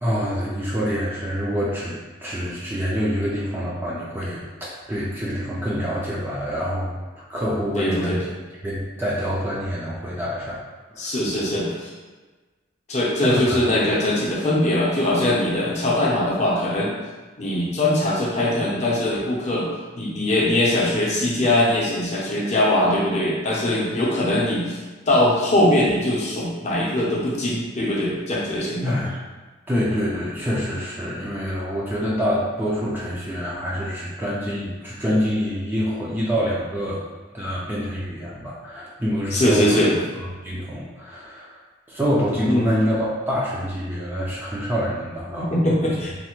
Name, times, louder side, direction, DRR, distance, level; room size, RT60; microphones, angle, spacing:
voice 1, 0.0-6.9 7.3-8.3 8.6-10.6 10.9-11.1 13.2-13.7 28.8-29.2 29.7-37.0 37.3-39.8 40.4-41.6 41.9-45.5, equal, 10° right, -7 dB, 0.4 m, -26 dB
voice 2, 7.7-8.2 11.0-11.9 12.9-17.0 17.4-19.7 19.9-24.8 25.1-29.0 39.3-40.0 42.5-42.7 45.4-46.1, left 1 dB, 35° left, -5 dB, 0.6 m, -21 dB
3.3 x 2.1 x 2.9 m, 1.3 s
head